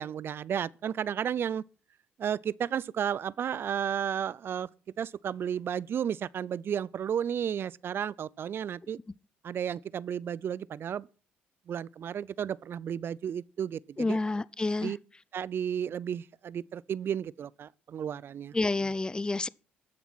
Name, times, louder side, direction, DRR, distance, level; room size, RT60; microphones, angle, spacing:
voice 1, 0.0-1.6 2.2-4.7 5.0-9.0 9.4-11.1 11.7-14.2 14.8-15.0 15.3-18.5, right 8 dB, 55° right, 0.5 m, -33 dB
voice 2, 14.0-14.9 18.5-19.5, left 2 dB, 20° left, 0.6 m, -29 dB
13.0 x 7.0 x 6.2 m
hypercardioid pair, 55°, 5 cm